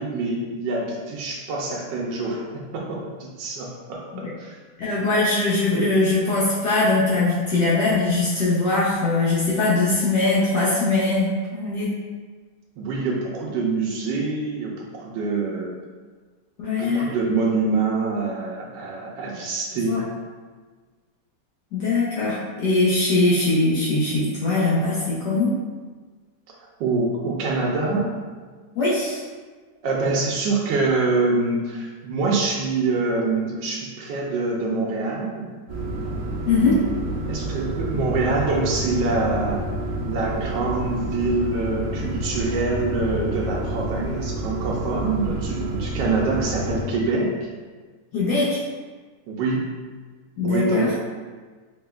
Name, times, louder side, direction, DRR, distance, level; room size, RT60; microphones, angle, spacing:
voice 1, 0.0-4.6 12.8-15.7 16.7-20.0 26.8-28.1 29.8-35.5 37.3-39.6 40.0-47.3 49.3-49.6 50.4-50.9, right 3 dB, 85° right, -3 dB, 1.3 m, -25 dB
voice 2, 4.8-11.9 16.6-17.1 19.8-20.0 21.7-25.5 28.8-29.2 36.5-36.8 48.1-48.6 50.4-50.9, left 3 dB, 70° left, -8 dB, 1.2 m, -21 dB
sound 1, 35.7-46.8, right 1 dB, 30° right, 0.5 m, -29 dB
4.2 x 3.2 x 2.3 m, 1.4 s
omnidirectional pair, 1.9 m